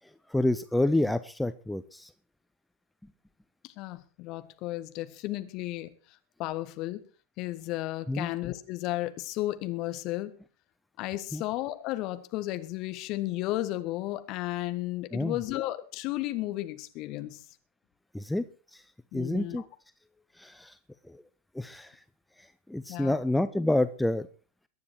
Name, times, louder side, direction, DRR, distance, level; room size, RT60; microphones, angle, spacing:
voice 1, 0.3-2.1 8.1-8.3 11.3-11.4 15.1-15.4 18.1-18.5 18.7-18.8 19.1-19.6 20.4-20.8 21.1-21.2 21.5-22.0 22.4-24.3, left 1 dB, 5° left, 12 dB, 0.7 m, -28 dB
voice 2, 3.6-5.9 6.4-7.0 7.4-10.3 11.0-17.4 19.1-19.6 22.9-23.2, left 16 dB, 40° left, 10 dB, 1.6 m, -33 dB
22.5 x 9.6 x 4.6 m, 0.36 s
figure-of-eight pair, 90°, 0 cm